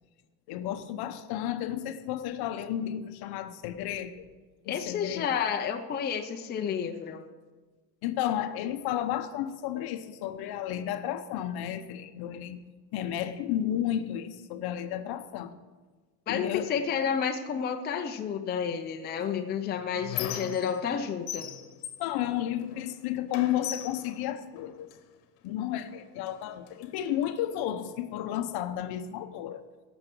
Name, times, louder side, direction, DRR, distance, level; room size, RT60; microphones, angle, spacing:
voice 1, 0.5-4.3 4.6-5.3 8.0-12.6 12.9-15.5 16.3-16.7 22.0-24.9 25.4-29.6, left 11 dB, 55° left, 9 dB, 1.0 m, -32 dB
voice 2, 4.7-7.3 16.3-21.5, left 7 dB, 20° left, 4 dB, 0.6 m, -31 dB
Squeak, 19.2-21.0 21.3-22.9 23.3-25.0 25.8-25.9 26.3-27.3, left 12 dB, 75° left, 1.3 m, -39 dB
18.0 x 7.0 x 5.4 m, 1.3 s
cardioid pair, 150°, 47 cm